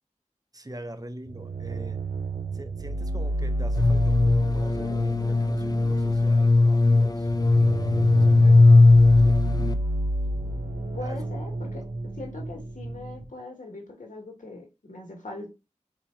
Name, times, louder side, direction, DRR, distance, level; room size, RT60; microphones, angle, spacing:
voice 1, 0.5-2.0 2.5-7.3 7.7-8.9 9.2-9.4 11.0-11.2, right 1 dB, 30° right, 0.7 m, -43 dB
sound 1, 1.3-13.2, right 1 dB, 60° right, 1.0 m, -31 dB
sound 2, 3.8-9.7, left 2 dB, 30° left, 0.4 m, -18 dB
voice 2, 10.9-11.8 12.1-15.5, left 2 dB, 90° left, 1.5 m, -40 dB
4.0 x 2.8 x 4.3 m
wide cardioid pair, 45°, 13 cm